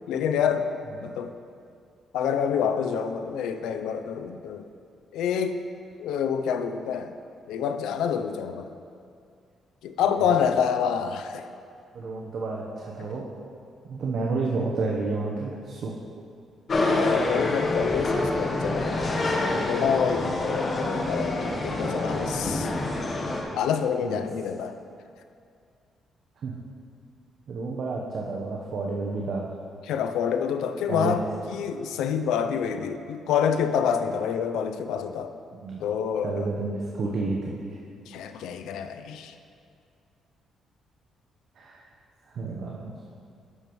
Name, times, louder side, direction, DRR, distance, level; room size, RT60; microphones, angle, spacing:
voice 1, 0.1-0.6 1.0-1.3 2.1-4.6 5.1-5.6 6.0-7.1 7.5-8.7 9.8-11.5 16.8-19.0 19.7-22.7 23.5-24.8 29.9-31.2 31.5-35.3 35.8-36.5 38.1-39.3, left 7 dB, 85° left, 8 dB, 0.4 m, -27 dB
voice 2, 10.1-10.5 11.9-13.3 13.9-16.0 24.0-24.2 26.4-26.6 27.5-29.5 30.9-31.1 35.5-35.8 36.2-37.8 41.6-41.9 42.3-42.9, right 3 dB, 60° right, -2 dB, 0.9 m, -31 dB
sound 1, 16.7-23.4, left 2 dB, 45° left, 1.2 m, -26 dB
11.0 x 6.8 x 3.1 m, 2.3 s
cardioid pair, 90°, 0 cm